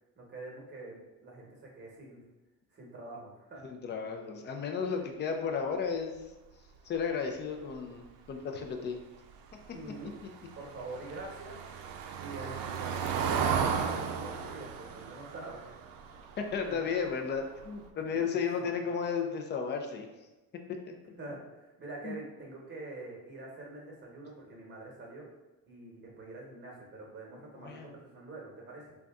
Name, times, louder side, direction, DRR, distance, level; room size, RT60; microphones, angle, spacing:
voice 1, 0.2-1.5 1.8-2.2 2.7-3.6 5.0-5.1 9.7-10.2 10.5-11.7 12.2-15.6 16.6-16.8 18.1-18.7 21.2-25.2 25.7-29.0, right 2 dB, 30° right, -2 dB, 1.1 m, -45 dB
voice 2, 3.6-6.1 6.8-9.0 16.4-20.1 20.7-21.2 22.0-22.1 27.6-27.9, left 6 dB, 30° left, 4 dB, 0.4 m, -34 dB
Car passing by / Engine, 10.1-17.0 17.4-17.6 17.9-18.0, right 7 dB, 80° right, 0.5 m, -34 dB
3.9 x 2.3 x 3.5 m, 1.1 s
cardioid pair, 150°, 35 cm